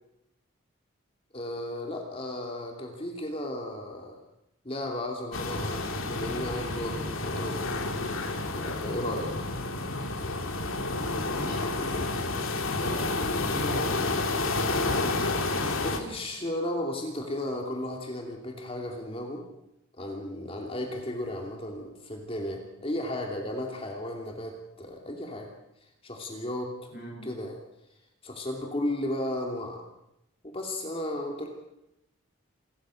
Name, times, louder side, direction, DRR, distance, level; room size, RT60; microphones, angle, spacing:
voice 1, 1.3-4.2 4.6-7.6 8.5-9.5 15.8-19.5 19.9-25.5 26.0-26.9 27.2-27.6 28.2-29.8 30.4-31.5, left 1 dB, 30° left, 2 dB, 2.8 m, -34 dB
sound 1, 5.3-16.0, left 2 dB, 80° left, 2.6 m, -30 dB
voice 2, 11.2-14.0 26.9-27.2, equal, 45° left, -2 dB, 7.3 m, -40 dB
27.5 x 14.0 x 7.7 m, 0.85 s
head